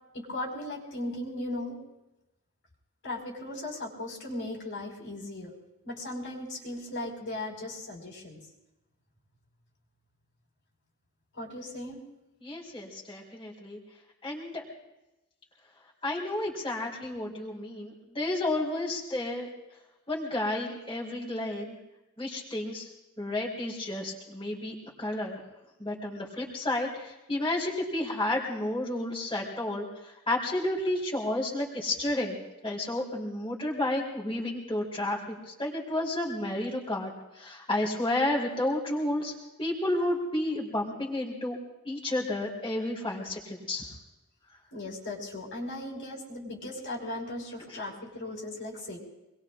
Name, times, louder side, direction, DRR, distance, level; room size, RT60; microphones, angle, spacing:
voice 1, 0.1-1.8 3.0-5.5 5.8-8.4 11.3-12.0 44.7-49.0, left 1 dB, 60° left, -2 dB, 4.8 m, -37 dB
voice 2, 12.4-13.8 14.2-14.6 16.0-19.5 20.1-21.8 22.2-22.9 23.2-25.4 25.8-32.4 32.6-37.1 37.4-39.3 39.6-41.6 41.8-43.9 47.7-47.8, left 1 dB, 25° left, -5 dB, 4.1 m, -31 dB
26.5 x 22.0 x 2.5 m, 0.99 s
head